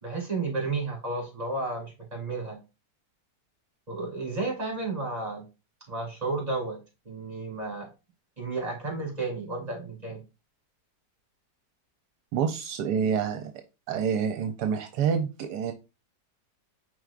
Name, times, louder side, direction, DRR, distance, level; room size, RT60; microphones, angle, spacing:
voice 1, 0.0-2.6 3.9-5.4 5.9-6.8 7.0-7.9 8.4-10.2, right 3 dB, 25° right, -1 dB, 2.7 m, -32 dB
voice 2, 12.3-13.5 13.9-15.7, right 7 dB, 80° right, 6 dB, 1.2 m, -27 dB
4.8 x 4.5 x 2.4 m, 0.27 s
omnidirectional pair, 1.8 m